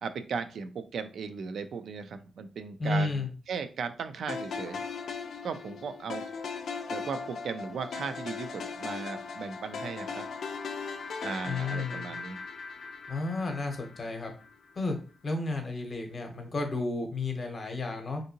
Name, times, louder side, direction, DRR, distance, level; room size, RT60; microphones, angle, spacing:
voice 1, 0.0-4.8 5.4-6.2 6.9-10.2 11.2-12.4, right 5 dB, 85° right, 9 dB, 0.3 m, -37 dB
voice 2, 2.8-3.3 11.4-12.1 13.1-14.3 14.8-15.0 15.2-18.2, left 3 dB, 40° left, 4 dB, 0.7 m, -32 dB
sound 1, 4.3-14.5, left 5 dB, 80° left, 0.4 m, -38 dB
3.6 x 2.6 x 2.7 m, 0.36 s
wide cardioid pair, 160°, 0 cm